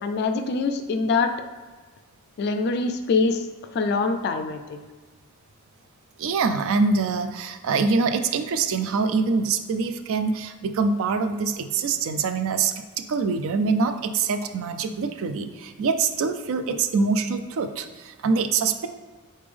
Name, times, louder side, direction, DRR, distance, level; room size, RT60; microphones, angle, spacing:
voice 1, 0.0-1.3 2.4-3.5 3.7-4.8, left 4 dB, 50° left, 7 dB, 0.3 m, -24 dB
voice 2, 6.2-18.9, right 4 dB, 65° right, 8 dB, 0.4 m, -24 dB
4.2 x 3.4 x 3.5 m, 1.4 s
head